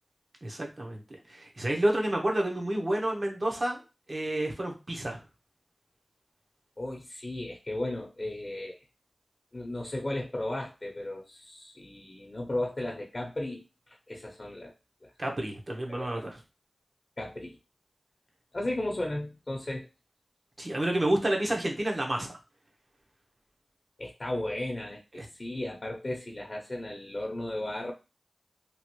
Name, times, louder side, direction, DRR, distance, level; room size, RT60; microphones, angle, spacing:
voice 1, 0.4-1.0 1.3-3.8 4.1-5.2 15.2-16.4 20.6-22.3 25.2-25.3, right 1 dB, 50° right, 1 dB, 0.9 m, -29 dB
voice 2, 6.8-8.8 9.5-14.7 15.0-15.1 15.9-16.3 17.2-17.6 18.5-19.9 24.0-27.9, left 1 dB, 50° left, 0 dB, 0.7 m, -35 dB
3.0 x 2.4 x 3.0 m, 0.29 s
cardioid pair, 45°, 0 cm